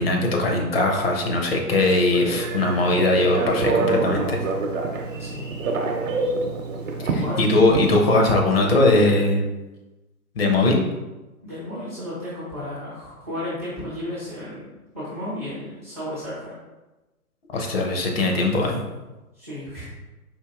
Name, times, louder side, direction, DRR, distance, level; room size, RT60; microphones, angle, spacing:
voice 1, 0.0-4.4 7.1-9.4 10.4-10.8 17.5-18.8, left 2 dB, 40° left, 1 dB, 0.7 m, -20 dB
Telephone, 2.1-8.2, right 3 dB, 60° right, 0.8 m, -26 dB
voice 2, 5.1-5.5 7.2-7.5 11.4-16.5 19.3-19.9, left 1 dB, 10° right, -12 dB, 0.4 m, -33 dB
4.5 x 2.6 x 3.6 m, 1.1 s
figure-of-eight pair, 130°, 45 cm